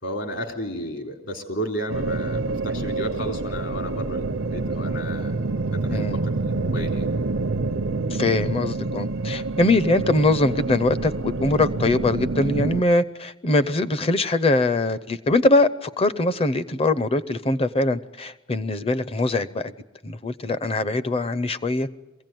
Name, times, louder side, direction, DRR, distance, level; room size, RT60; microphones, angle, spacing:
voice 1, 0.0-5.3 5.7-7.1, equal, 65° left, 4 dB, 3.5 m, -33 dB
sound 1, 1.9-12.8, right 3 dB, 80° right, 0.8 m, -27 dB
voice 2, 8.1-19.7 20.0-21.9, left 2 dB, 30° left, 15 dB, 0.6 m, -22 dB
22.5 x 16.0 x 9.2 m, 1.1 s
head